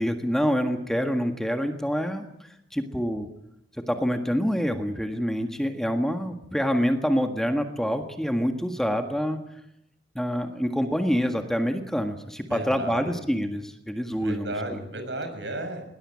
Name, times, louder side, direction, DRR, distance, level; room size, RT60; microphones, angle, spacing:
voice 1, 0.0-3.3 3.9-9.4 10.1-14.5, equal, 5° left, 5 dB, 1.7 m, -26 dB
voice 2, 12.5-13.2 14.1-15.8, right 1 dB, 75° right, 7 dB, 6.2 m, -34 dB
20.5 x 20.0 x 8.6 m, 0.79 s
head